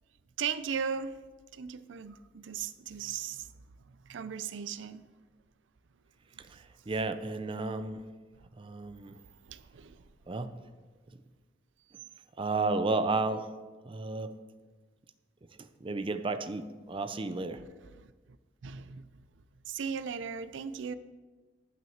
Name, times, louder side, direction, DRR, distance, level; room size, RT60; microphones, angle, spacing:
voice 1, 0.4-1.1 1.5-3.5 4.1-5.0 9.5-10.0 17.9-18.1 18.6-19.1 19.7-21.0, right 7 dB, 90° right, 14 dB, 0.4 m, -37 dB
voice 2, 6.4-8.1 8.6-9.2 10.3-10.5 12.4-13.5 13.8-14.3 15.6-17.6, right 3 dB, 30° right, 10 dB, 0.5 m, -32 dB
9.2 x 5.9 x 7.2 m, 1.4 s
head